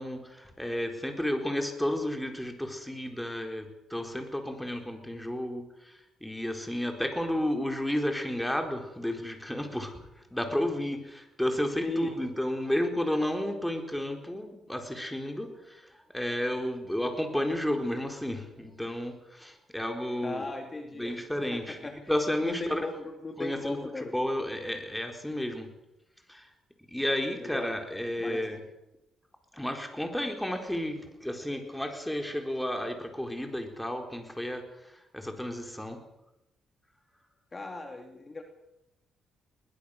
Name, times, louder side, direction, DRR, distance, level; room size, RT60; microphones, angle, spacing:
voice 1, 0.0-10.0 10.3-20.5 20.9-23.0 23.4-25.7 26.3-26.5 26.9-28.6 29.5-36.0, left 1 dB, 5° left, 4 dB, 4.3 m, -32 dB
voice 2, 11.8-12.1 20.2-21.2 21.5-22.0 22.4-24.1 27.4-27.7 28.2-28.4 37.5-38.4, left 3 dB, 25° left, 3 dB, 2.7 m, -37 dB
21.5 x 20.5 x 6.7 m, 0.91 s
cardioid pair, 90°, 0 cm